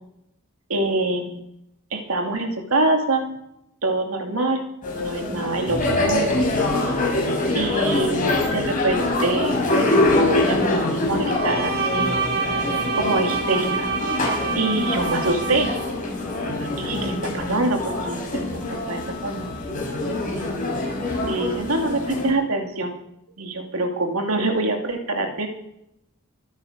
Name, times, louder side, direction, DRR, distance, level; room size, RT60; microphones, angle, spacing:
voice 1, 0.7-1.4 1.9-3.2 3.8-4.6 5.0-6.4 7.5-12.1 13.0-13.9 14.5-15.8 16.8-18.2 18.5-19.5 20.7-20.9 21.2-22.9 23.4-25.5, right 2 dB, 80° right, 3 dB, 2.6 m, -25 dB
sound 1, 4.8-22.3, left 2 dB, 40° left, 6.0 m, -24 dB
Bowed string instrument, 11.2-15.9, right 4 dB, 50° right, 2.5 m, -27 dB
23.5 x 9.1 x 5.2 m, 0.80 s
head